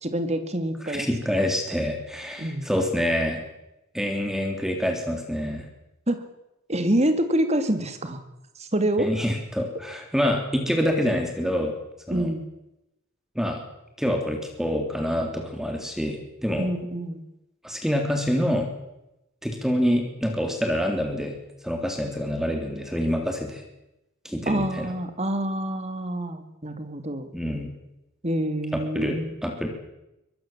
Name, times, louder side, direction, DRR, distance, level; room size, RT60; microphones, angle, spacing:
voice 1, 0.0-1.1 2.4-2.7 6.1-6.3 6.7-8.2 8.6-9.1 12.1-12.5 16.6-17.2 24.5-27.3 28.2-29.3, right 1 dB, 30° right, 8 dB, 2.5 m, -26 dB
voice 2, 0.8-3.4 3.9-5.7 9.0-11.7 12.1-12.3 13.3-13.6 14.0-16.7 17.6-18.7 19.4-21.3 21.6-23.6 24.2-24.9 27.3-27.7 28.7-29.7, equal, ahead, 3 dB, 3.3 m, -26 dB
24.5 x 20.0 x 7.4 m, 0.90 s
head